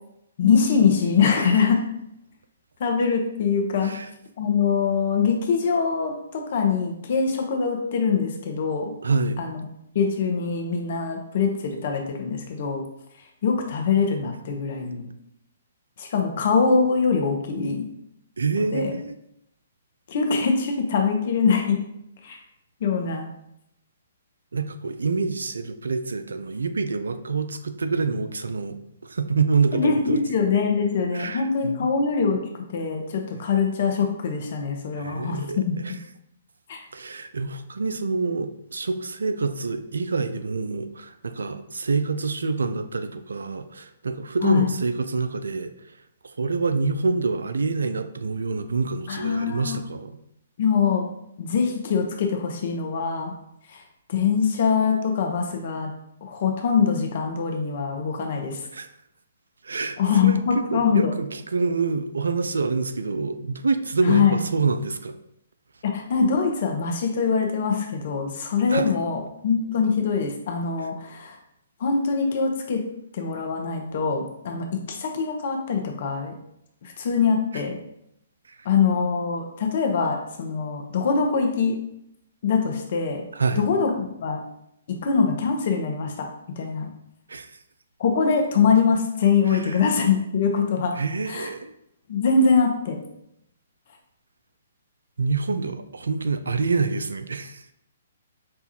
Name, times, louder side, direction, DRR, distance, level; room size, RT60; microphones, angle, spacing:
voice 1, 0.4-1.9 2.8-4.0 4.4-8.9 9.4-9.6 9.9-12.9 13.4-15.1 16.0-17.9 18.6-18.9 20.1-21.8 22.2-22.4 22.8-23.3 29.7-32.4 32.7-36.0 36.7-36.8 44.4-44.8 49.1-49.8 50.6-51.1 51.4-53.3 53.7-53.8 54.1-55.9 56.2-58.6 60.0-61.1 64.0-64.4 65.8-71.4 71.8-72.9 73.1-76.4 76.8-77.8 78.6-81.8 82.4-83.2 83.6-84.4 84.9-86.3 86.5-86.9 88.0-91.0 91.3-91.5 92.1-93.0, left 5 dB, 55° left, 3 dB, 0.7 m, -23 dB
voice 2, 9.0-9.4 18.4-19.2 24.5-30.2 31.1-31.9 34.9-36.0 36.9-46.0 46.2-50.1 58.7-58.9 59.6-65.2 68.7-69.0 70.8-70.9 78.5-78.7 83.3-83.6 87.3-87.6 89.4-89.8 90.9-91.7 95.2-97.7, right 4 dB, 75° right, 10 dB, 0.3 m, -27 dB
5.5 x 2.3 x 2.8 m, 0.78 s
figure-of-eight pair, 125°, 0 cm